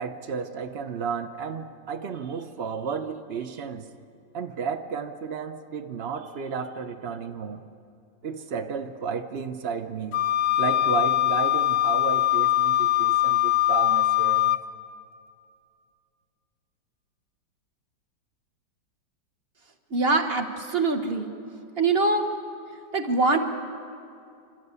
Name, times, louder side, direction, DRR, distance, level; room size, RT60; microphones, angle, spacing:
voice 1, 0.0-3.9 4.3-7.6 8.2-10.2 10.6-14.6, right 6 dB, 75° right, 7 dB, 0.5 m, -32 dB
Wind instrument woodwind instrument, 10.1-14.6, left 13 dB, 65° left, 1.0 m, -22 dB
voice 2, 19.9-21.3 21.8-22.3 22.9-23.4, right 3 dB, 35° right, 6 dB, 1.3 m, -23 dB
28.0 x 12.5 x 8.2 m, 2.5 s
omnidirectional pair, 2.1 m